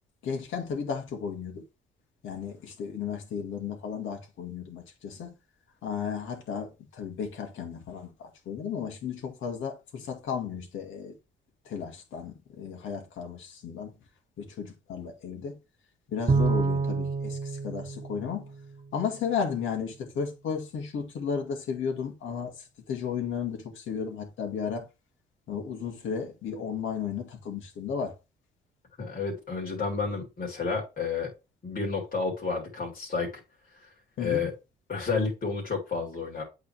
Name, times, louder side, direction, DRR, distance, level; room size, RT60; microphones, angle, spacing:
voice 1, 0.2-1.6 2.2-5.3 5.8-11.2 11.7-13.9 14.4-15.6 16.1-18.5 18.9-24.9 25.5-28.2 34.2-34.4, left 6 dB, 75° left, 2.1 m, -34 dB
Bowed string instrument, 16.3-18.9, right 4 dB, 30° right, 0.7 m, -28 dB
voice 2, 29.0-31.3 31.6-33.4 34.2-34.5 34.9-36.4, left 4 dB, 45° left, 3.3 m, -30 dB
8.7 x 4.1 x 3.3 m
cardioid pair, 90°, 20 cm